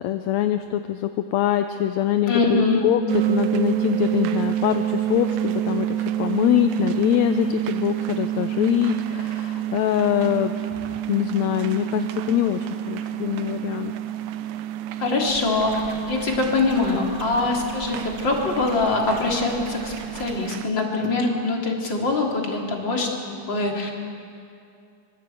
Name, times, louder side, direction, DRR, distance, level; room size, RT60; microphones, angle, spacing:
voice 1, 0.0-3.0 3.3-10.5 11.1-13.9, left 12 dB, 75° left, 8 dB, 1.9 m, -23 dB
voice 2, 2.3-2.8 15.0-23.9, left 3 dB, 40° left, 0 dB, 3.6 m, -23 dB
sound 1, 3.1-20.7, right 12 dB, 85° right, 2.3 m, -28 dB
sound 2, 15.3-20.4, right 2 dB, 35° right, 4.2 m, -40 dB
25.0 x 22.0 x 8.6 m, 2.5 s
omnidirectional pair, 3.4 m